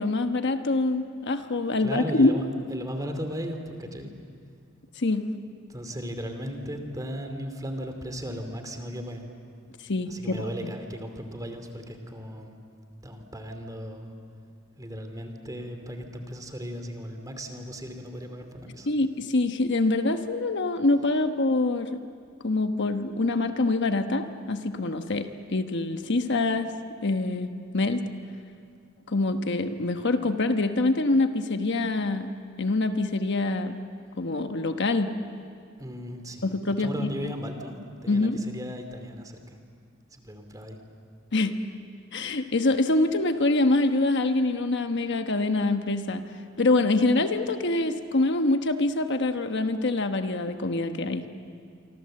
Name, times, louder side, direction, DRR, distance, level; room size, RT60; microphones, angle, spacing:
voice 1, 0.0-2.3 5.0-5.3 9.9-10.7 18.9-22.0 22.4-26.7 27.0-28.0 29.1-32.3 32.6-33.8 34.2-35.1 36.4-36.9 37.2-37.3 38.1-38.4 41.3-41.6 42.1-46.2 46.6-51.2, left 2 dB, 60° left, 7 dB, 1.2 m, -25 dB
voice 2, 1.8-4.1 5.7-9.3 10.1-12.5 13.0-14.1 14.8-18.9 35.8-39.6 40.1-40.8, equal, 20° right, 5 dB, 2.7 m, -36 dB
27.0 x 25.0 x 7.7 m, 2.2 s
head